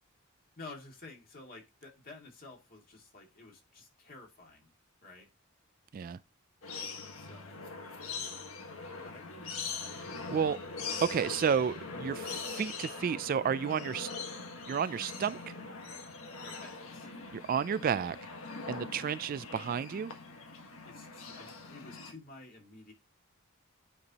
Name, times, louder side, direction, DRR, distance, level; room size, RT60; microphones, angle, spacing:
voice 1, 0.6-4.7 5.0-5.3 7.1-7.6 9.0-9.6 16.4-17.1 20.8-22.9, left 3 dB, 45° left, 2.2 m, -51 dB
sound 1, 6.6-22.1, left 4 dB, 80° left, 1.5 m, -42 dB
voice 2, 10.0-10.6 11.0-14.1 14.7-15.4 17.3-18.2 18.7-20.1, right 7 dB, 45° right, 0.3 m, -31 dB
9.5 x 4.5 x 2.9 m
head